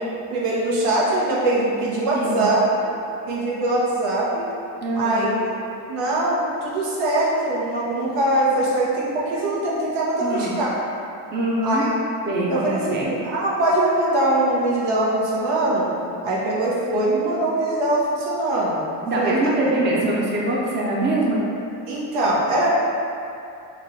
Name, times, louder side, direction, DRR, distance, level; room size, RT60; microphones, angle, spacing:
voice 1, 0.0-2.8 3.3-4.4 4.9-5.5 5.9-10.7 11.6-11.9 12.5-15.9 16.2-18.8 19.2-19.5 21.9-22.7, right 1 dB, 90° right, -6 dB, 1.2 m, -22 dB
voice 2, 2.1-2.5 4.8-5.3 10.2-10.6 11.3-11.9 12.3-13.1 16.9-17.0 19.1-21.4, right 1 dB, 25° right, -4 dB, 0.5 m, -23 dB
4.0 x 2.4 x 4.6 m, 2.7 s
cardioid pair, 150°, 49 cm